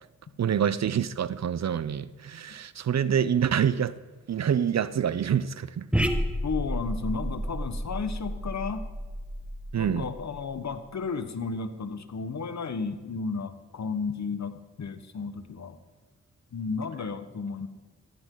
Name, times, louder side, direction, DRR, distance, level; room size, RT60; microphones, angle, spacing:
voice 1, 0.4-4.0 4.3-5.9 9.7-10.1, right 8 dB, 55° right, 0.6 m, -26 dB
sound 1, 5.9-10.6, equal, 5° right, 1.4 m, -31 dB
voice 2, 6.4-8.9 9.7-15.8 16.5-17.7, left 5 dB, 60° left, 1.3 m, -33 dB
15.5 x 15.0 x 3.9 m
cardioid pair, 50°, 32 cm